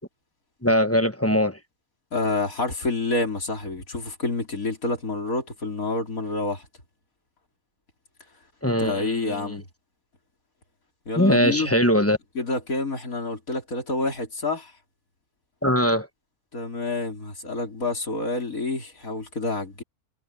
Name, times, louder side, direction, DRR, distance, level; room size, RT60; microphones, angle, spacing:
voice 1, 0.6-1.6 8.6-9.6 11.2-12.2 15.6-16.1, equal, 10° left, 1.0 m, -21 dB
voice 2, 2.1-6.6 8.8-9.7 11.1-11.7 12.3-14.7 16.5-19.8, left 3 dB, 70° left, 4.8 m, -28 dB
omnidirectional pair, 1.5 m